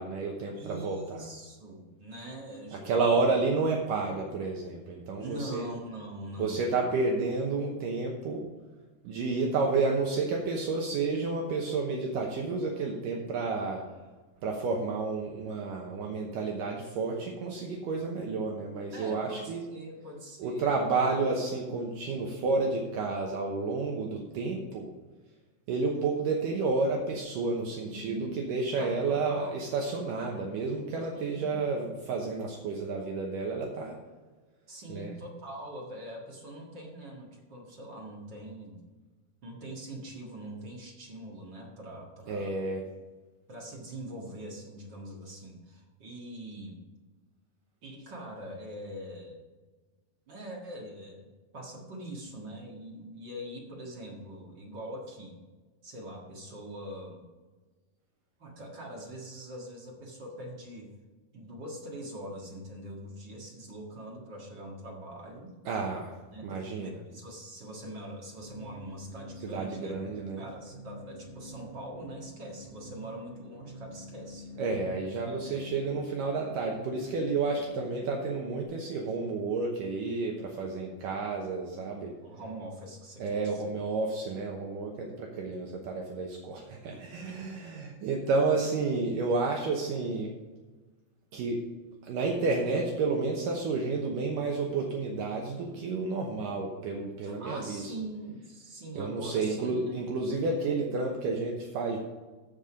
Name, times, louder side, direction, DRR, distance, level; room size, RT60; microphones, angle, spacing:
voice 1, 0.0-1.2 2.8-5.7 6.4-8.5 9.0-13.8 14.4-19.6 20.4-24.9 25.7-34.0 34.9-35.1 42.3-42.8 65.7-66.1 66.4-67.0 69.4-70.4 74.6-82.1 83.2-90.3 91.3-91.6 92.0-97.9 99.0-102.0, right 3 dB, 70° right, 0 dB, 2.4 m, -30 dB
voice 2, 0.6-3.0 5.2-6.7 18.9-20.9 27.9-28.4 28.8-29.6 31.1-31.6 34.7-38.8 39.4-42.6 43.5-46.8 47.8-49.4 50.3-51.3 51.5-55.4 55.8-57.2 58.4-60.9 61.3-65.5 66.3-69.9 70.4-74.5 75.3-75.8 82.2-83.7 85.5-85.8 86.7-87.4 97.2-100.0, right 1 dB, 45° right, -2 dB, 1.6 m, -43 dB
sound 1, 68.4-78.6, equal, 85° right, 3.1 m, -47 dB
14.5 x 5.4 x 5.1 m, 1.3 s
omnidirectional pair, 4.4 m